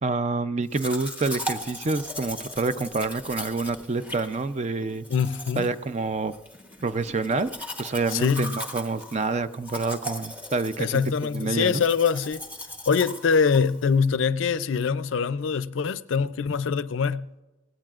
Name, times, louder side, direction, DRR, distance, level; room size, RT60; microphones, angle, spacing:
voice 1, 0.0-5.1 5.6-6.3 6.8-11.0 11.3-11.8, right 3 dB, 35° right, 0.4 m, -27 dB
Domestic sounds home sounds, 0.7-14.1, equal, 10° right, 1.0 m, -38 dB
voice 2, 5.1-5.7 8.1-8.5 10.8-12.4 12.9-17.2, left 6 dB, 75° left, 0.4 m, -24 dB
18.5 x 16.5 x 2.4 m
head